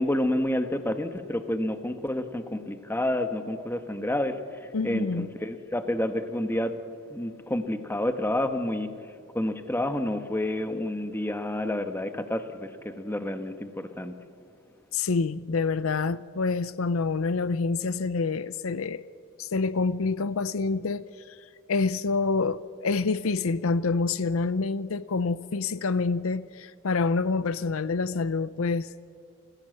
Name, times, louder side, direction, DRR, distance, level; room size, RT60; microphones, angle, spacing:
voice 1, 0.0-6.8 7.1-8.9 9.3-14.2, left 1 dB, 10° left, 1.2 m, -29 dB
voice 2, 4.7-5.3 14.9-19.1 19.4-21.4 21.7-28.9, left 4 dB, 70° left, 0.6 m, -27 dB
28.5 x 16.0 x 7.9 m
head